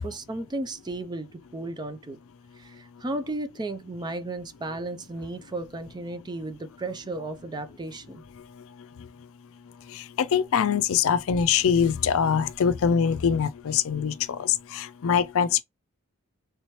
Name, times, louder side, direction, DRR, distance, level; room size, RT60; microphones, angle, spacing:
voice 1, 0.0-2.2 2.6-8.2, right 2 dB, 20° right, 0.4 m, -34 dB
voice 2, 9.9-15.6, left 7 dB, 65° left, 0.4 m, -23 dB
3.3 x 2.9 x 3.0 m
head